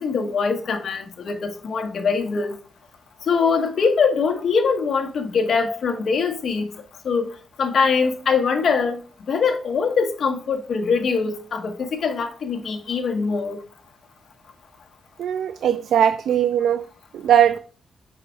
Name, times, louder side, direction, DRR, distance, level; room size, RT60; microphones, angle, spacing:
voice 1, 0.0-2.6 3.2-6.7 7.0-7.3 7.6-9.0 9.3-13.6, left 5 dB, 55° left, 1.0 m, -22 dB
voice 2, 15.2-16.9 17.1-17.6, right 9 dB, 80° right, 0.3 m, -19 dB
6.0 x 4.8 x 3.4 m
wide cardioid pair, 140°, 0 cm